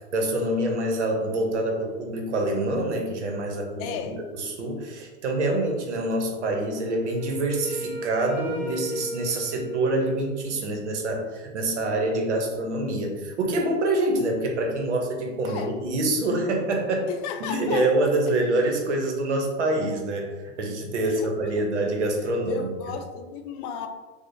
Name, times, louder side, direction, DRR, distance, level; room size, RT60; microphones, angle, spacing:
voice 1, 0.1-17.1 17.4-20.3 20.6-22.7, right 2 dB, 85° right, 2 dB, 0.9 m, -26 dB
voice 2, 3.8-4.2 15.5-15.7 17.1-18.1 21.0-21.3 21.6-21.7 22.5-23.9, left 7 dB, 50° left, 5 dB, 0.5 m, -34 dB
Wind instrument woodwind instrument, 6.8-10.6, right 1 dB, 25° right, 0.9 m, -36 dB
4.8 x 2.1 x 2.6 m, 1.2 s
hypercardioid pair, 110°, 34 cm